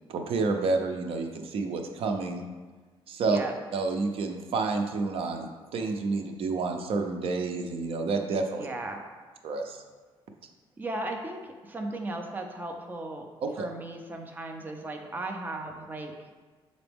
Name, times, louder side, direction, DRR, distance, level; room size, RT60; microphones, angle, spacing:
voice 1, 0.1-2.4 3.1-3.4 3.7-8.7 9.4-9.8 13.4-13.7, right 3 dB, 70° right, 4 dB, 0.6 m, -29 dB
voice 2, 8.6-9.0 10.8-13.3 13.6-16.1, right 2 dB, 20° right, 3 dB, 0.6 m, -36 dB
6.9 x 3.9 x 3.5 m, 1.4 s
cardioid pair, 130°, 10 cm